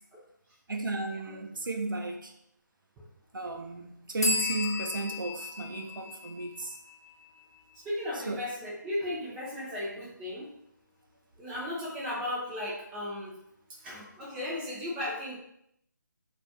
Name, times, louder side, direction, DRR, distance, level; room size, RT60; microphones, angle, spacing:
voice 1, 0.7-2.3 3.3-6.8 8.3-8.4, right 2 dB, 85° right, 0.5 m, -34 dB
sound 1, 4.2-7.8, left 3 dB, 55° left, 0.5 m, -35 dB
voice 2, 7.8-10.5 11.4-13.3 13.8-15.4, left 1 dB, 5° right, 0.3 m, -35 dB
2.2 x 2.2 x 2.6 m
figure-of-eight pair, 155°, 11 cm